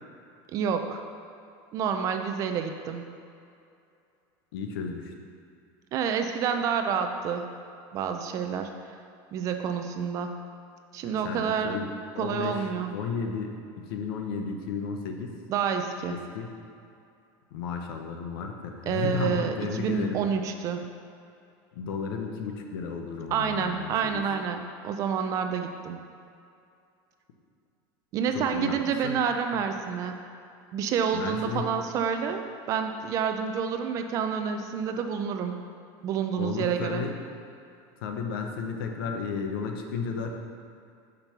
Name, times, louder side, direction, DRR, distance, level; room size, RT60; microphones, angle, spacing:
voice 1, 0.5-1.0 1.7-3.0 5.9-7.4 7.9-8.7 9.3-10.3 10.9-11.8 12.2-12.9 15.5-16.2 18.9-20.8 23.3-26.0 28.1-30.1 30.7-35.5 36.0-37.0, right 7 dB, 30° right, 6 dB, 0.3 m, -28 dB
voice 2, 4.5-5.1 11.0-12.7 12.9-13.5 13.9-15.4 16.1-16.5 17.5-20.2 21.7-24.2 28.3-28.8 29.0-29.2 31.1-31.7 36.4-37.2 38.0-40.3, left 5 dB, 85° left, 4 dB, 0.8 m, -33 dB
5.1 x 4.4 x 5.8 m, 2.5 s
cardioid pair, 175°, 12 cm